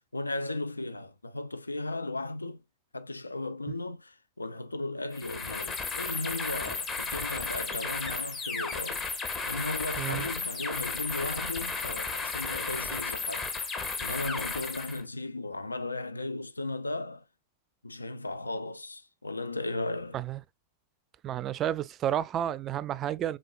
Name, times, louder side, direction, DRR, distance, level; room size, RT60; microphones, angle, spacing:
voice 1, 0.0-2.6 2.9-9.1 9.4-17.2 17.8-20.2, left 2 dB, 80° left, 0.3 m, -36 dB
sound 1, 5.1-15.0, left 4 dB, 25° left, 0.9 m, -34 dB
voice 2, 10.0-10.3 20.1-20.4 21.2-23.4, right 11 dB, 30° right, 0.3 m, -31 dB
5.1 x 3.7 x 2.5 m
figure-of-eight pair, 90°, 0 cm